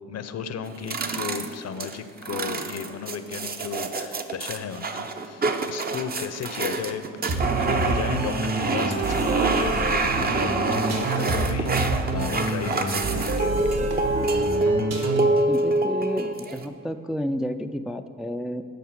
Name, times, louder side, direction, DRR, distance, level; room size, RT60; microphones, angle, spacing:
voice 1, 0.1-13.8, left 7 dB, 55° left, 11 dB, 0.7 m, -35 dB
sound 1, 0.6-16.6, right 3 dB, 30° right, 0.8 m, -26 dB
sound 2, 7.3-15.4, right 2 dB, 55° right, 1.9 m, -28 dB
voice 2, 15.5-18.7, equal, ahead, 6 dB, 0.4 m, -31 dB
10.5 x 5.8 x 7.3 m, 2.2 s
cardioid pair, 90°, 30 cm